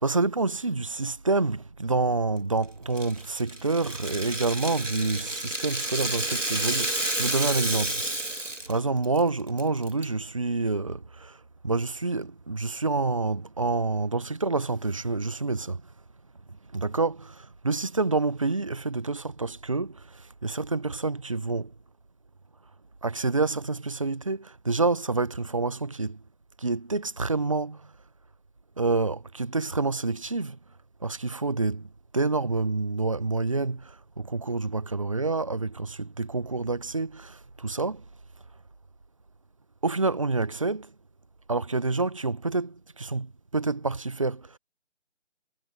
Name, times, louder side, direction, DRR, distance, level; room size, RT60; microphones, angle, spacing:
voice 1, 0.0-8.0 8.7-15.8 16.7-21.7 23.0-26.2 26.6-27.9 28.8-30.6 31.0-31.9 32.1-38.0 39.8-40.9 41.5-44.6, right 3 dB, 25° right, 1.3 m, -28 dB
Rattle (instrument), 3.0-8.8 9.0-9.2 9.6-10.0, right 1 dB, 85° right, 2.5 m, -30 dB
figure-of-eight pair, 160°, 36 cm